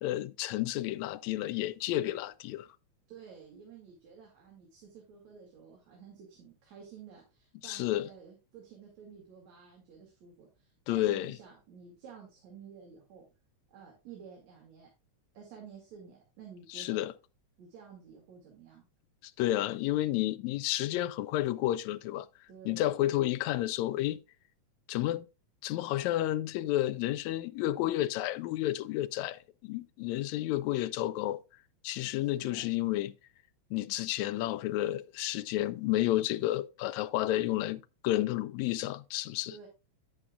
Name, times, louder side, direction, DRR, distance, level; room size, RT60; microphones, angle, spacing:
voice 1, 0.0-2.7 7.6-8.1 10.9-11.4 16.7-17.1 19.4-22.3 22.7-24.2 24.9-25.3 25.6-31.4 31.8-33.1 33.7-39.5, left 15 dB, 80° left, 1.8 m, -31 dB
voice 2, 3.1-13.3 13.7-14.9 15.3-17.1 17.6-18.8 22.5-23.0 32.1-32.7 39.5-39.7, right 6 dB, 70° right, 3.3 m, -51 dB
9.6 x 8.7 x 2.3 m
omnidirectional pair, 3.3 m